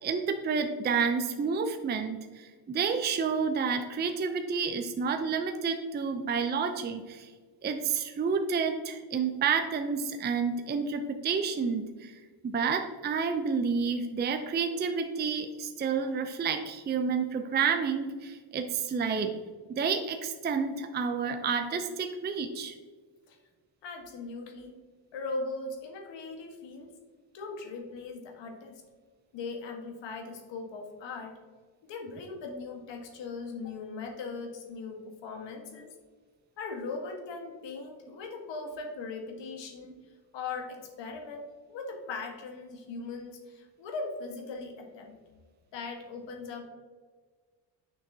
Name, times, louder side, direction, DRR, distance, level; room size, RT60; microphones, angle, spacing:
voice 1, 0.0-7.3 7.6-19.3 19.7-22.7, right 5 dB, 25° right, 6 dB, 0.5 m, -30 dB
voice 2, 23.8-24.7 25.1-26.9 27.3-28.8 29.3-31.4 31.8-35.9 36.6-39.9 40.3-45.2 45.7-46.6, left 3 dB, 75° left, 3 dB, 1.5 m, -39 dB
6.9 x 5.9 x 2.7 m, 1.5 s
cardioid pair, 95°, 44 cm